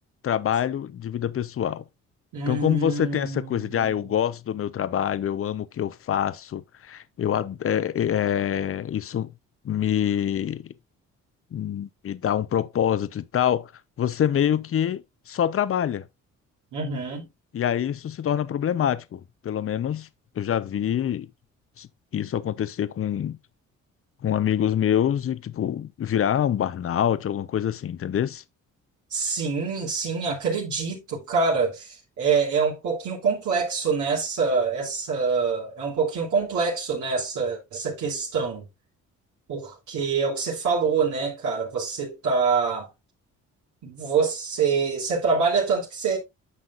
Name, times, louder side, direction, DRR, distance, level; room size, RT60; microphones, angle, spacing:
voice 1, 0.2-1.8 2.5-9.3 9.6-10.7 11.5-13.7 14.0-16.1 17.5-20.1 20.4-21.3 21.8-21.9 22.1-23.4 24.2-28.4, left 9 dB, 45° left, 0.8 m, -25 dB
voice 2, 2.3-4.0 16.7-17.3 29.1-38.7 39.5-42.9 43.8-46.2, right 5 dB, 75° right, 3.1 m, -25 dB
9.9 x 6.3 x 2.5 m
cardioid pair, 90°, 30 cm